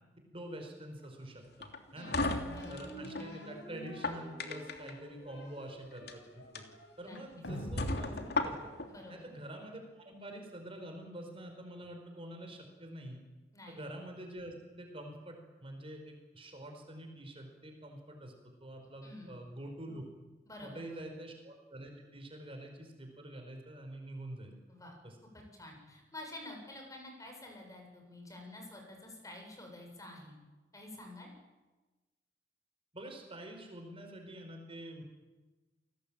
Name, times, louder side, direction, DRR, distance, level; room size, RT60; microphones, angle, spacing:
voice 1, 0.3-2.2 2.7-6.6 7.0-8.1 8.4-8.6 9.1-13.2 13.7-18.3 18.6-20.0 20.6-24.5 25.0-25.2 32.9-35.0, right 1 dB, 30° right, 3 dB, 5.0 m, -46 dB
sound 1, 1.6-3.3 3.8-4.9 5.9-6.1 6.5-6.6 7.1-7.2 7.8-8.9, left 2 dB, 65° left, 3.0 m, -35 dB
voice 2, 1.9-2.8 7.0-7.2 8.9-9.2 13.5-13.8 19.0-19.4 20.5-21.1 24.7-25.0 25.3-30.3 30.7-31.3, left 1 dB, 20° left, 2 dB, 7.5 m, -49 dB
sound 2, 2.0-9.5, equal, 80° left, 6.0 m, -46 dB
29.0 x 20.0 x 9.0 m, 1.2 s
head